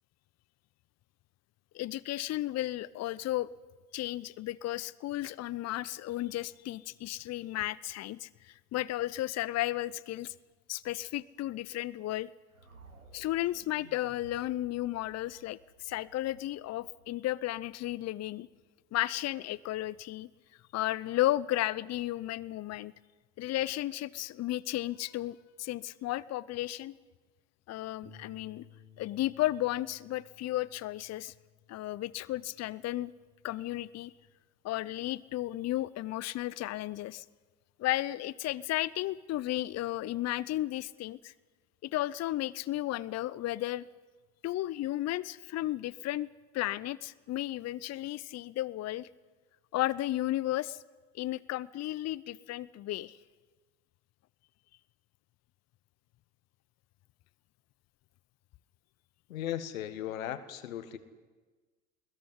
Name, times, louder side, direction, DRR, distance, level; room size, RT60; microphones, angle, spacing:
voice 1, 1.7-3.5 3.9-10.3 10.7-12.3 13.1-18.5 18.9-20.3 20.7-22.9 23.4-26.9 27.7-28.6 29.0-31.3 31.7-33.1 33.4-34.1 34.6-37.2 37.8-41.3 41.8-43.9 44.4-46.3 46.5-49.1 49.7-50.8 51.1-53.2, left 15 dB, 40° left, 18 dB, 0.8 m, -34 dB
sound 1, 12.5-18.6, right 3 dB, 90° right, 1.9 m, -58 dB
Bass guitar, 28.0-34.3, left 5 dB, 55° right, 3.2 m, -60 dB
voice 2, 59.3-61.0, left 11 dB, 75° left, 11 dB, 1.7 m, -37 dB
23.0 x 21.0 x 9.9 m, 1.4 s
figure-of-eight pair, 65°, 40 cm